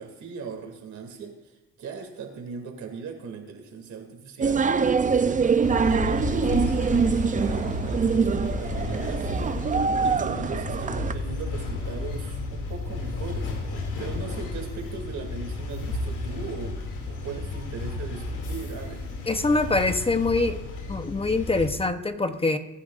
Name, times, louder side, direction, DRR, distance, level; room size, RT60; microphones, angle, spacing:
voice 1, 0.0-4.7 5.0-7.0 7.4-9.6 10.0-13.5 14.0-16.8 17.1-19.1, right 5 dB, 70° right, 3 dB, 2.7 m, -38 dB
sound 1, 4.4-11.1, right 5 dB, 25° right, 0.5 m, -24 dB
sound 2, 5.6-21.7, left 2 dB, 85° left, 2.6 m, -32 dB
voice 2, 19.3-20.6 20.9-22.6, left 3 dB, 20° left, 8 dB, 0.9 m, -24 dB
22.5 x 10.0 x 2.5 m, 1.1 s
cardioid pair, 90°, 30 cm